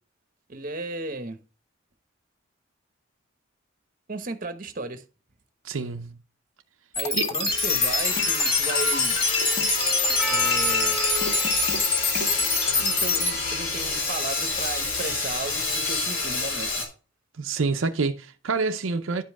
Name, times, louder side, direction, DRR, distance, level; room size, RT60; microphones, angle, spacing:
voice 1, 0.5-1.4 4.1-5.0 6.9-9.2 10.2-11.0 12.7-16.7, right 3 dB, 40° right, 1.0 m, -35 dB
voice 2, 5.6-6.1 7.1-7.3 17.4-19.2, right 4 dB, 80° right, 0.7 m, -27 dB
sound 1, 6.9-13.3, left 3 dB, 30° left, 1.7 m, -25 dB
Sawing, 7.5-16.9, left 3 dB, 80° left, 3.5 m, -28 dB
Percussion, 10.2-14.5, left 1 dB, 5° right, 1.2 m, -36 dB
11.0 x 5.3 x 3.5 m
head